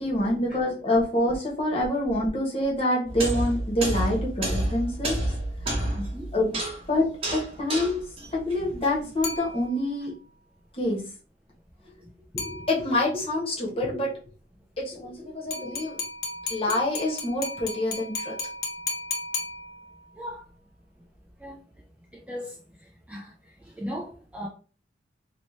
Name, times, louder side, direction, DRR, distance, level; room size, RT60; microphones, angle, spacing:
voice 1, 0.0-5.2 6.3-6.6 6.9-8.0 8.3-10.1 10.8-11.0 12.3-14.1 14.8-16.0 16.5-18.3, left 1 dB, 30° left, 1.1 m, -26 dB
sound 1, 3.1-9.3, right 1 dB, 30° right, 0.9 m, -30 dB
voice 2, 5.9-6.3 20.2-20.5 21.4-21.6 22.1-22.5 23.1-23.3 23.8-24.5, equal, 5° right, 0.4 m, -36 dB
sound 2, 9.2-10.1 12.4-13.1 15.5-20.1, left 3 dB, 50° left, 0.6 m, -35 dB
3.0 x 2.9 x 3.1 m
head